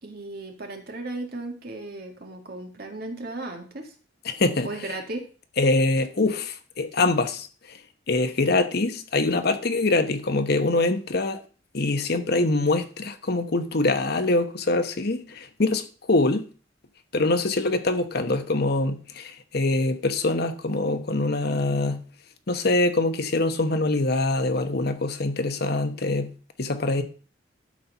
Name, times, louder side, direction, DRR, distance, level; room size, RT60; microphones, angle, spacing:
voice 1, 0.0-3.9 4.6-5.2, right 2 dB, 55° right, 2.0 m, -35 dB
voice 2, 4.2-4.7 5.6-7.8 8.1-11.4 11.7-16.5 17.1-22.0 22.5-27.0, left 2 dB, 55° left, 1.0 m, -24 dB
12.0 x 4.4 x 5.6 m
head